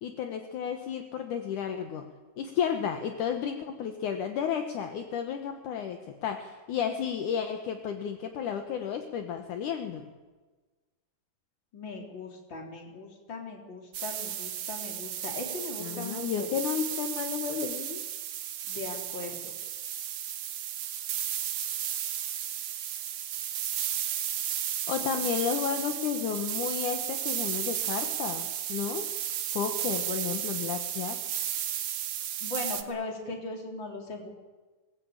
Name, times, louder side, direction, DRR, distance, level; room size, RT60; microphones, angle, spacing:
voice 1, 0.0-2.1 2.4-10.1 15.8-18.0 24.9-29.1 29.5-31.2, left 8 dB, 70° left, 6 dB, 2.6 m, -32 dB
voice 2, 11.7-16.5 18.7-19.5 32.4-34.3, left 3 dB, 35° left, 2 dB, 3.9 m, -39 dB
sound 1, 13.9-32.8, right 10 dB, 60° right, 2.1 m, -34 dB
22.5 x 20.0 x 8.9 m, 1.3 s
omnidirectional pair, 4.0 m